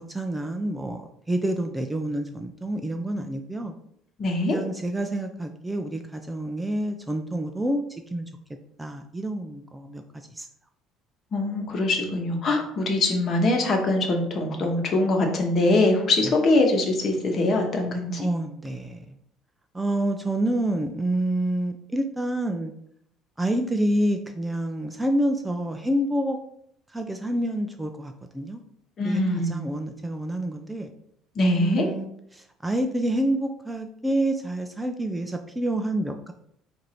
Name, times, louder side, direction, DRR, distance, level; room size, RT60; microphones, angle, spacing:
voice 1, 0.1-3.7 4.4-8.3 8.8-10.0 10.3-10.5 16.2-16.3 18.2-19.1 19.7-22.7 23.4-26.4 26.9-28.6 29.0-30.9 31.6-36.3, right 1 dB, 10° right, 5 dB, 0.4 m, -28 dB
voice 2, 4.2-4.6 11.3-18.2 29.0-29.6 31.4-31.9, left 2 dB, 45° left, 2 dB, 1.1 m, -23 dB
4.6 x 2.6 x 4.3 m, 0.72 s
cardioid pair, 105°, 0 cm